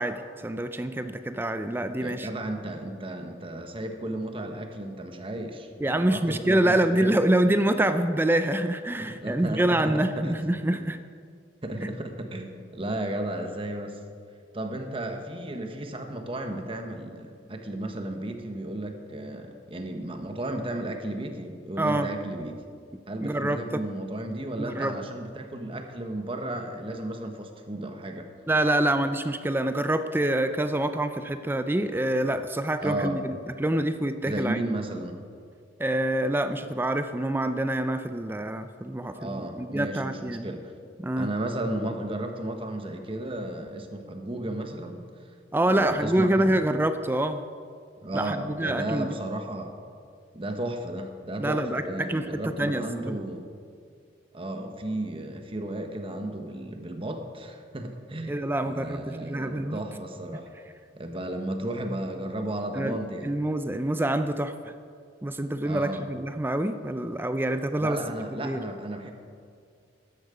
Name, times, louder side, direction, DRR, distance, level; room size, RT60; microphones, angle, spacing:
voice 1, 0.0-2.3 5.8-11.0 11.8-11.9 21.8-22.1 23.2-23.8 24.6-24.9 28.5-34.6 35.8-40.5 41.0-41.3 45.5-47.4 48.1-49.1 51.4-53.2 58.3-59.8 62.7-63.0 63.2-64.7 65.2-68.0 68.4-68.6, right 1 dB, 10° right, 10 dB, 0.4 m, -26 dB
voice 2, 2.0-7.2 9.2-10.4 11.6-14.0 14.5-22.6 23.1-28.3 32.8-33.2 34.2-35.2 39.2-40.7 41.2-45.0 45.7-46.6 48.0-49.7 50.3-53.4 54.3-58.4 58.7-60.5 60.9-63.3 65.6-66.0 67.8-69.1, right 1 dB, 30° right, 5 dB, 1.1 m, -34 dB
13.5 x 10.5 x 5.0 m, 2.2 s
head